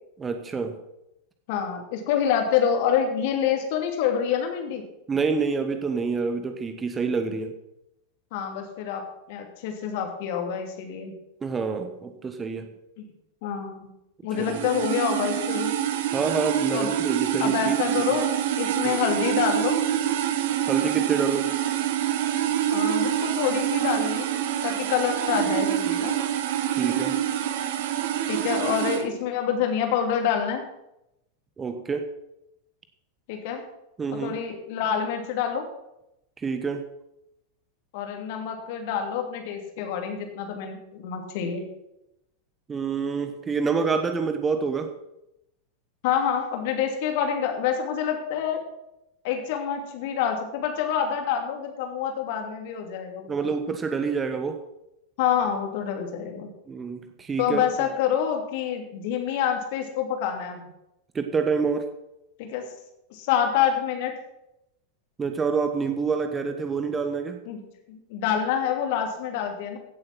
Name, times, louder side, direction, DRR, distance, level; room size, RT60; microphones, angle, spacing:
voice 1, 0.2-0.8 5.1-7.5 11.4-12.7 14.4-14.7 16.1-18.0 18.8-19.0 20.7-21.5 26.7-27.2 31.6-32.1 34.0-34.3 36.4-36.8 42.7-44.9 53.3-54.6 56.7-57.6 61.1-61.9 65.2-67.4, right 5 dB, 20° right, 7 dB, 1.3 m, -27 dB
voice 2, 1.5-4.8 8.3-9.0 9.3-11.1 13.4-13.9 14.2-15.7 16.7-17.0 17.4-19.8 22.7-24.3 24.6-26.1 28.3-30.6 33.3-33.6 34.2-35.7 37.9-41.7 46.0-48.6 49.2-53.3 55.2-56.5 57.4-60.6 62.4-62.7 63.1-64.2 67.5-67.6 67.9-69.8, left 8 dB, 50° left, 4 dB, 2.7 m, -27 dB
sound 1, 14.3-29.0, right 11 dB, 55° right, 1.3 m, -26 dB
16.0 x 7.9 x 6.0 m, 0.87 s
figure-of-eight pair, 90°, 0 cm